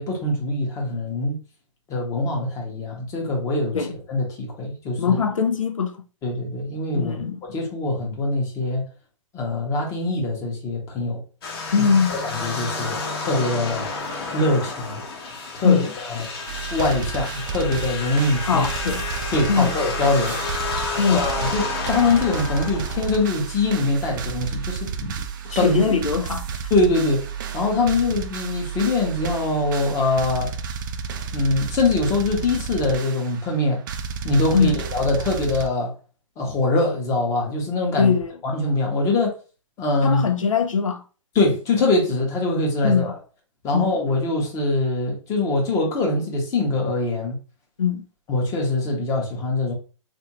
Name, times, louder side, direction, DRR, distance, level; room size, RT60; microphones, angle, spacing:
voice 1, 0.0-1.4 1.9-3.8 4.1-5.2 6.2-7.1 7.5-8.8 9.3-11.2 12.1-13.9 14.3-15.0 15.5-15.8 16.1-16.3 16.7-18.7 19.3-20.4 21.1-25.1 25.4-25.8 26.7-30.5 31.3-33.8 34.2-35.9 36.4-38.1 38.4-39.4 39.8-40.2 41.3-43.1 43.6-47.4 48.3-49.7, left 2 dB, 20° left, 0.9 m, -23 dB
voice 2, 5.0-6.0 6.9-7.4 11.7-12.2 15.6-15.9 18.4-19.1 19.5-19.7 21.0-21.3 25.5-26.6 34.5-34.8 38.0-38.4 40.0-41.0 42.8-43.1 43.7-43.9 47.8-48.0, left 6 dB, 75° left, 0.5 m, -21 dB
sound 1, 11.4-23.5, left 3 dB, 45° left, 1.0 m, -30 dB
sound 2, 16.5-35.7, right 7 dB, 40° right, 0.4 m, -32 dB
3.5 x 2.6 x 2.9 m
figure-of-eight pair, 125°, 17 cm